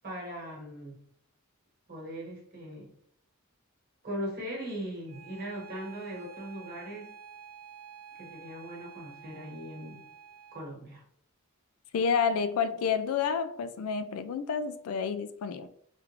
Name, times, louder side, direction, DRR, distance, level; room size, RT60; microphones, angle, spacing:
voice 1, 0.0-1.0 1.9-2.9 4.0-7.1 8.2-10.1 10.5-11.0, right 1 dB, 45° right, -2 dB, 1.2 m, -39 dB
Bowed string instrument, 5.1-10.7, right 5 dB, 80° right, 0.9 m, -50 dB
voice 2, 11.9-15.7, left 6 dB, 75° left, 12 dB, 0.3 m, -29 dB
3.4 x 2.5 x 2.9 m, 0.65 s
head